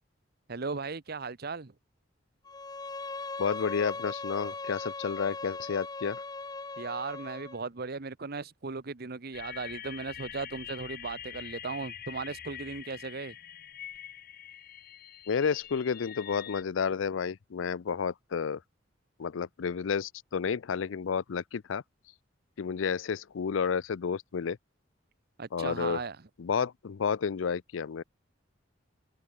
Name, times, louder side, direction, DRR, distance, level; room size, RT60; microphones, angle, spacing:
voice 1, 0.5-1.7 6.8-13.4 25.4-26.2, right 4 dB, 55° right, 1.0 m, -37 dB
Bowed string instrument, 2.5-7.6, left 3 dB, 20° left, 0.8 m, -39 dB
voice 2, 3.4-6.2 15.3-18.6 19.2-21.8 22.6-24.6 25.5-26.0 26.4-28.0, left 6 dB, 85° left, 0.5 m, -31 dB
sound 1, 9.3-16.6, left 10 dB, 50° left, 1.2 m, -45 dB
open air
head